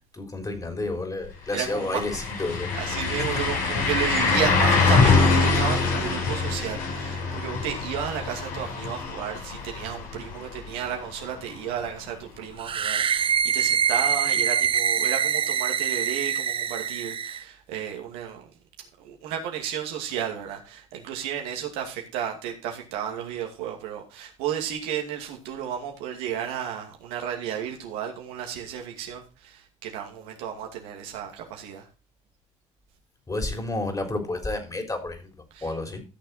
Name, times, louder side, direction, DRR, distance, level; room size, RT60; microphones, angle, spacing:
voice 1, 0.1-2.7 33.3-35.3 35.6-36.0, left 2 dB, 20° left, 4.1 m, -30 dB
sound 1, 1.2-1.3 1.6-11.4 11.8-11.9 14.6-14.7, left 4 dB, 60° left, 3.9 m, -24 dB
voice 2, 1.5-2.3 2.7-18.4 19.0-31.8 35.5-35.7, right 9 dB, 75° right, 2.4 m, -33 dB
sound 2, 12.6-17.4, right 8 dB, 35° right, 0.5 m, -24 dB
14.5 x 6.8 x 4.3 m
hypercardioid pair, 60°, 16 cm